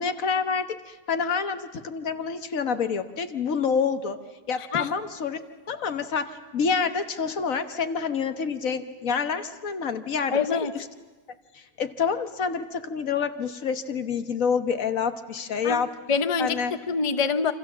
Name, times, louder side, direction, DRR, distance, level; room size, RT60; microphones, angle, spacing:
voice 1, 0.0-4.2 4.5-5.4 5.7-10.9 11.5-15.9 16.4-16.7, left 6 dB, 70° left, 9 dB, 1.6 m, -27 dB
voice 2, 10.3-10.7 15.6-15.8 16.1-17.5, left 5 dB, 25° left, 11 dB, 0.8 m, -25 dB
28.0 x 26.5 x 7.4 m, 1.3 s
omnidirectional pair, 1.5 m